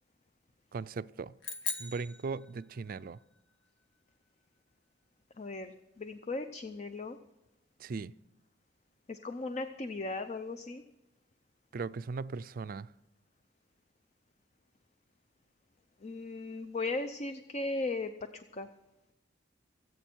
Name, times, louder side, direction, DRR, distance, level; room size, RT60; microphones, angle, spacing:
voice 1, 0.7-1.3 1.8-3.2 7.8-8.1 11.7-12.9, right 4 dB, 50° right, 0.4 m, -38 dB
sound 1, 1.4-3.1, left 5 dB, 85° left, 1.3 m, -40 dB
voice 2, 5.4-7.2 9.1-10.8 16.0-18.7, left 3 dB, 35° left, 0.6 m, -37 dB
25.0 x 8.4 x 4.5 m
head